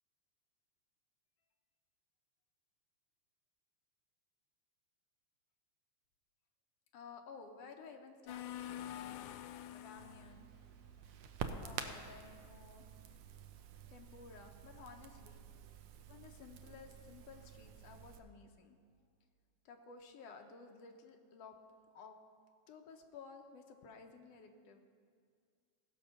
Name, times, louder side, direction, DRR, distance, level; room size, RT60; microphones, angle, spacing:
voice 1, 6.9-9.2 9.7-10.5 11.6-12.9 13.9-15.4 16.0-18.8 19.6-21.6 21.9-22.2 22.7-24.8, left 5 dB, 70° left, 5 dB, 1.6 m, -55 dB
sound 1, 8.3-10.3, left 11 dB, 90° left, 2.0 m, -46 dB
Crackle, 10.0-18.2, right 7 dB, 75° right, 1.6 m, -49 dB
16.0 x 6.7 x 5.5 m, 2.2 s
omnidirectional pair, 3.4 m